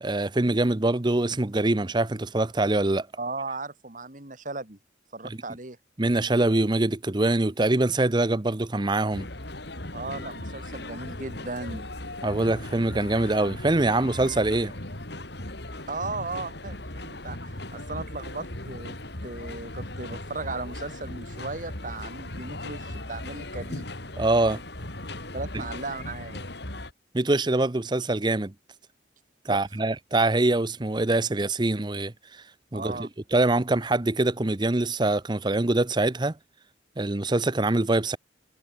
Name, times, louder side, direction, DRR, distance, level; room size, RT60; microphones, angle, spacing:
voice 1, 0.0-3.1 6.0-9.3 12.2-14.7 24.2-24.6 27.1-28.5 29.4-32.4 32.7-36.3 37.0-38.2, right 2 dB, 25° right, 0.7 m, -24 dB
voice 2, 3.2-4.8 5.1-5.8 9.9-11.9 15.9-18.9 19.2-23.9 25.3-26.5 29.5-29.9 32.7-33.1, right 3 dB, 40° right, 2.6 m, -36 dB
sound 1, 9.1-26.9, left 1 dB, 60° left, 3.7 m, -38 dB
head